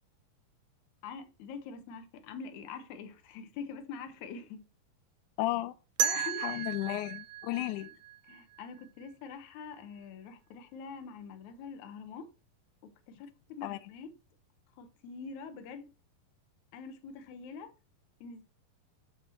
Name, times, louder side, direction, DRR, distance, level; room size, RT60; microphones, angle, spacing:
voice 1, 1.0-4.7 6.3-6.7 7.5-7.9 8.3-12.3 12.8-14.2 14.7-15.9 16.7-17.7 18.2-18.4, left 5 dB, 70° left, 2.1 m, -45 dB
voice 2, 5.4-5.7 6.0-7.9 13.6-13.8, left 16 dB, 90° left, 1.7 m, -34 dB
sound 1, 6.0-8.9, right 11 dB, 80° right, 2.5 m, -35 dB
12.0 x 4.3 x 2.9 m
omnidirectional pair, 4.1 m